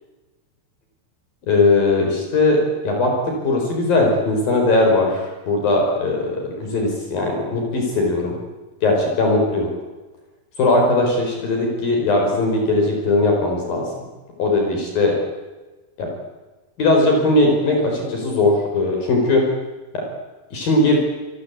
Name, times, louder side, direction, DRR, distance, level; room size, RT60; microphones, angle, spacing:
voice 1, 1.5-2.6 2.8-8.4 8.8-9.7 10.6-13.9 14.4-15.2 16.0-16.1 16.8-19.4 19.9-20.0 20.5-21.0, left 2 dB, 60° left, 1 dB, 6.9 m, -19 dB
27.5 x 24.5 x 8.5 m, 1.2 s
omnidirectional pair, 4.7 m